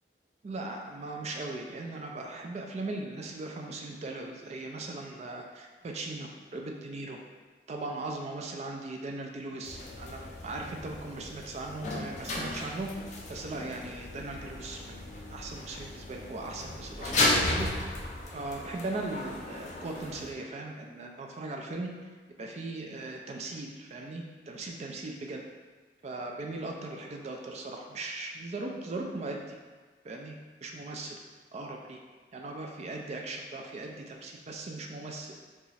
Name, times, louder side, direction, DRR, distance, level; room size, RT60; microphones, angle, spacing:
voice 1, 0.4-7.2 7.7-17.8 18.3-22.1 22.4-25.4 26.0-29.6 30.0-30.4 30.6-31.1 31.5-32.0 32.3-35.3, right 2 dB, 35° right, 1 dB, 0.3 m, -39 dB
sound 1, 9.7-20.3, left 2 dB, 40° left, 0.5 m, -34 dB
2.9 x 2.4 x 4.1 m, 1.4 s
head